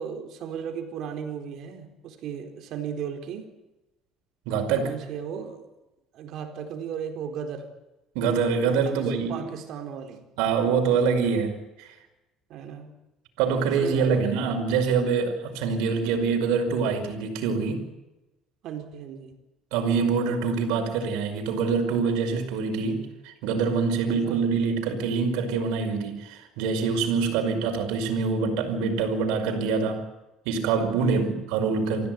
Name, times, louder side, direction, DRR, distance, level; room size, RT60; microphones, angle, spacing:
voice 1, 0.0-3.5 4.8-5.7 6.1-7.7 8.7-10.3 12.5-13.0 13.6-14.4 18.6-19.4 24.1-24.5 27.3-27.6 31.0-31.4, right 7 dB, 65° right, 5 dB, 4.4 m, -36 dB
voice 2, 4.5-4.9 8.2-9.5 10.4-11.9 13.4-17.8 19.7-30.1 30.5-32.1, right 5 dB, 90° right, 4 dB, 5.4 m, -25 dB
25.5 x 16.5 x 9.4 m, 1.0 s
cardioid pair, 120°, 0 cm